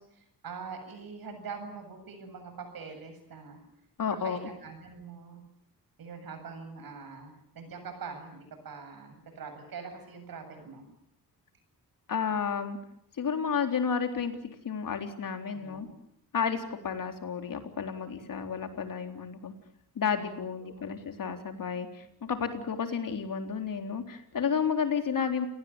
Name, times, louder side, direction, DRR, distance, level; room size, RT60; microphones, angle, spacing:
voice 1, 0.0-3.6 4.1-5.4 6.0-10.8 15.5-15.9 20.6-20.7, right 5 dB, 80° right, 7 dB, 7.6 m, -43 dB
voice 2, 4.0-4.4 12.1-12.8 13.2-14.4 14.6-15.9 16.3-19.5 20.0-25.5, left 6 dB, 65° left, 6 dB, 3.8 m, -31 dB
28.5 x 19.0 x 9.8 m, 0.74 s
cardioid pair, 95°, 35 cm